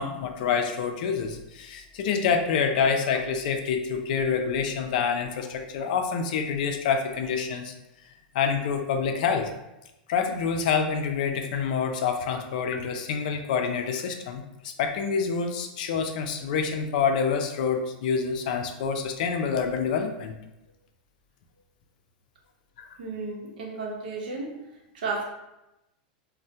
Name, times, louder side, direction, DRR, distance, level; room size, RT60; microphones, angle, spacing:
voice 1, 0.0-7.7 8.3-9.5 10.1-20.3 22.8-23.0, left 6 dB, 65° left, 5 dB, 0.4 m, -27 dB
voice 2, 23.0-24.6 24.9-25.2, right 3 dB, 85° right, -1 dB, 0.7 m, -33 dB
3.2 x 2.1 x 2.7 m, 0.93 s
supercardioid pair, 140°, 5 cm